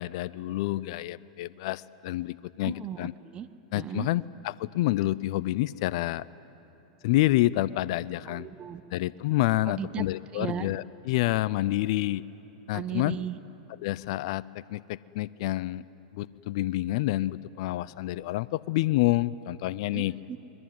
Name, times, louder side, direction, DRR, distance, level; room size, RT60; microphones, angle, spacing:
voice 1, 0.0-3.1 3.7-6.2 7.0-8.5 8.9-12.2 12.7-13.2 13.8-15.8 16.1-20.1, left 17 dB, 60° left, 19 dB, 0.5 m, -28 dB
voice 2, 2.6-3.5 3.7-4.1 8.3-8.8 9.6-10.0 10.3-10.7 12.7-13.4 19.9-20.4, right 9 dB, 30° right, 14 dB, 1.0 m, -36 dB
26.0 x 21.5 x 9.5 m, 3.0 s
hypercardioid pair, 110°, 4 cm